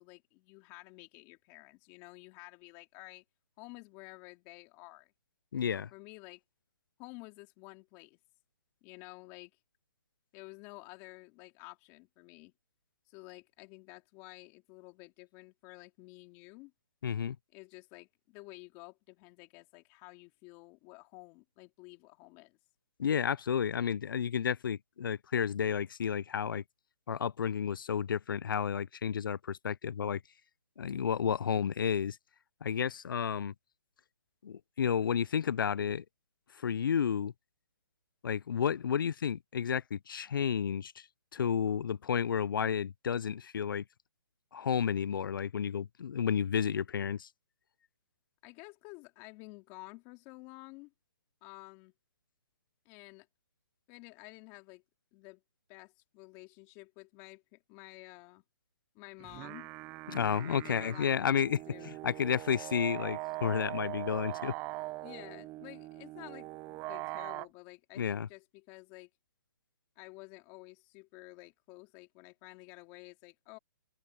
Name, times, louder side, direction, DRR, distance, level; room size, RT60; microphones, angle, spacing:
voice 1, 0.0-3.2 3.6-5.1 5.6-6.4 7.0-8.2 8.8-9.5 10.3-12.5 13.1-16.7 17.5-22.6 48.4-50.9 51.4-51.9 52.9-53.3 53.9-54.8 55.1-55.4 55.7-58.4 59.0-59.7 60.4-61.9 65.0-69.1 70.0-73.6, left 25 dB, 25° left, 3.3 m, -51 dB
voice 2, 5.5-5.9 17.0-17.4 23.0-26.6 27.1-30.2 30.8-32.2 32.6-33.5 34.4-36.0 36.6-37.3 38.2-41.1 41.3-43.8 44.5-47.3 60.1-61.6 61.8-64.5 68.0-68.3, left 7 dB, 80° left, 0.4 m, -31 dB
sound 1, 59.2-67.5, right 20 dB, 15° right, 0.5 m, -41 dB
open air
hypercardioid pair, 160°, 11 cm